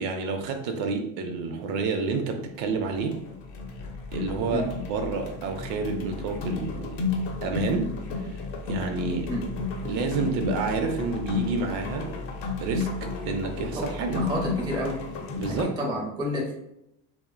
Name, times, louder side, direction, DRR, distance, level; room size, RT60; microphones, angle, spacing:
voice 1, 0.0-3.2 4.1-7.0 7.4-8.4 8.7-9.3 9.8-12.1 12.6-14.2 15.4-15.7, right 4 dB, 65° right, 5 dB, 0.5 m, -29 dB
sound 1, 2.4-2.7 3.0-15.6, left 4 dB, 65° left, 0.7 m, -33 dB
voice 2, 14.1-15.0 15.5-16.5, equal, 10° right, -2 dB, 0.4 m, -30 dB
2.5 x 2.1 x 2.4 m, 0.81 s
supercardioid pair, 120°, 48 cm